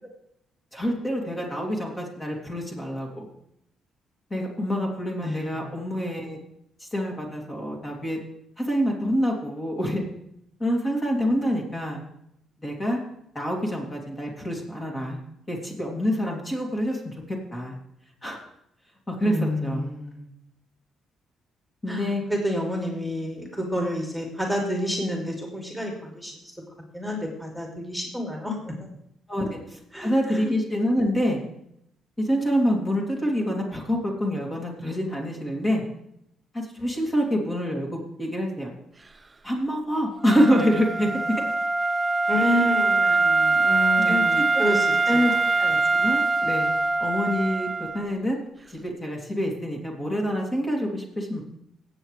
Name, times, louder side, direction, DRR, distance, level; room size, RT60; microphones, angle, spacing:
voice 1, 0.7-3.3 4.3-6.4 6.8-8.2 8.6-10.0 10.6-12.0 12.6-13.0 13.3-15.2 15.5-17.8 18.2-18.4 19.1-19.9 21.8-22.2 29.3-31.4 32.2-35.8 36.5-38.7 39.4-41.1 42.4-42.6 43.0-43.2 44.1-44.7 45.1-46.7 47.0-48.4 48.7-51.4, equal, 25° left, -1 dB, 2.7 m, -26 dB
voice 2, 5.2-5.5 19.2-20.3 21.9-26.5 26.9-28.7 29.9-30.4 42.3-45.4, left 1 dB, ahead, 0 dB, 2.6 m, -29 dB
Wind instrument woodwind instrument, 40.2-48.0, right 3 dB, 25° right, 0.6 m, -23 dB
18.0 x 7.9 x 3.3 m, 0.77 s
cardioid pair, 90°, 0 cm